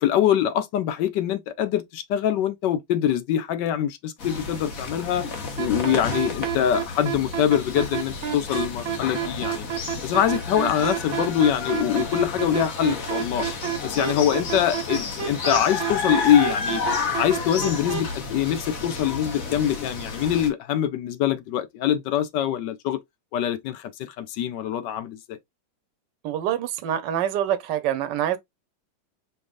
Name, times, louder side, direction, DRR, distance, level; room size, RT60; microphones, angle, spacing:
voice 1, 0.0-5.3 5.6-9.7 10.0-13.5 13.8-16.8 17.2-23.0 23.3-25.4, left 10 dB, 75° left, 1.2 m, -24 dB
sound 1, 4.2-20.5, left 4 dB, 50° left, 1.4 m, -31 dB
sound 2, 5.6-18.0, right 10 dB, 55° right, 1.4 m, -28 dB
voice 2, 26.2-28.4, right 10 dB, 75° right, 1.3 m, -25 dB
5.1 x 3.4 x 2.3 m
omnidirectional pair, 2.1 m